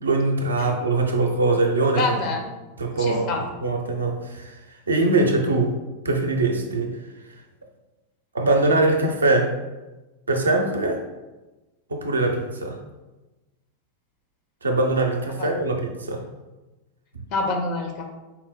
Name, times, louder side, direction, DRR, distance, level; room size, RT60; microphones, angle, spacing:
voice 1, 0.0-2.2 2.8-3.3 3.6-4.6 4.9-5.7 6.0-6.9 8.3-9.5 10.3-11.0 11.9-12.8 14.6-16.2, right 2 dB, 75° right, 3 dB, 0.5 m, -22 dB
voice 2, 1.9-2.5 3.0-3.4 15.4-15.5 17.3-18.1, left 3 dB, 40° left, 3 dB, 0.6 m, -26 dB
4.1 x 2.0 x 4.3 m, 1.1 s
figure-of-eight pair, 90°, 0 cm